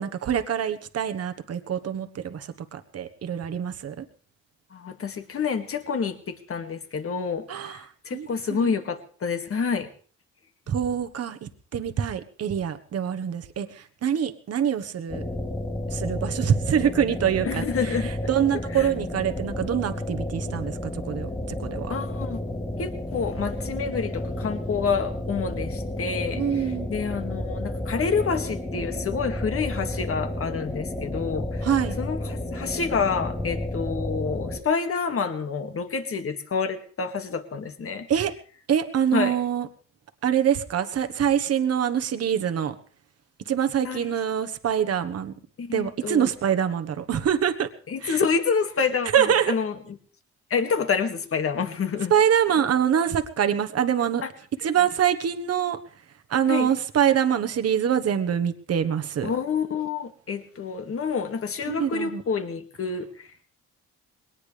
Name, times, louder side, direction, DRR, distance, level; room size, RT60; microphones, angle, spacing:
voice 1, 0.0-4.0 7.5-8.7 10.7-15.2 15.9-21.3 21.6-21.9 26.3-26.9 31.6-32.0 38.1-38.3 38.7-39.7 40.2-42.7 43.5-45.3 45.7-47.7 48.0-48.2 49.1-49.5 52.1-54.2 54.6-55.8 56.3-59.3 61.7-62.2, right 9 dB, 55° right, 9 dB, 1.4 m, -25 dB
voice 2, 4.7-9.9 17.4-18.1 18.8-18.9 21.9-22.4 22.8-31.7 32.0-38.1 39.1-39.4 43.8-44.1 45.6-46.3 47.9-49.7 50.5-52.1 56.5-56.7 59.2-63.3, left 5 dB, 50° left, 7 dB, 2.2 m, -28 dB
sound 1, 15.1-34.6, left 1 dB, 15° left, 3.8 m, -31 dB
21.0 x 18.5 x 3.4 m, 0.42 s
cardioid pair, 90°, 30 cm